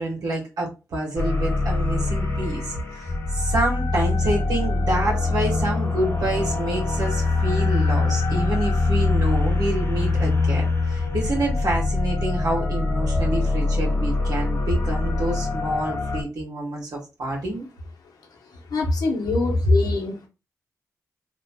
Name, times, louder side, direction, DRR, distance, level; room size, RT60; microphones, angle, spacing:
voice 1, 0.0-17.7, right 1 dB, 90° right, -3 dB, 1.3 m, -27 dB
sound 1, 1.2-16.2, left 3 dB, 45° left, 1.4 m, -23 dB
voice 2, 18.7-20.3, left 3 dB, 90° left, 1 dB, 0.8 m, -25 dB
3.0 x 2.2 x 4.1 m, 0.28 s
cardioid pair, 60°, 6 cm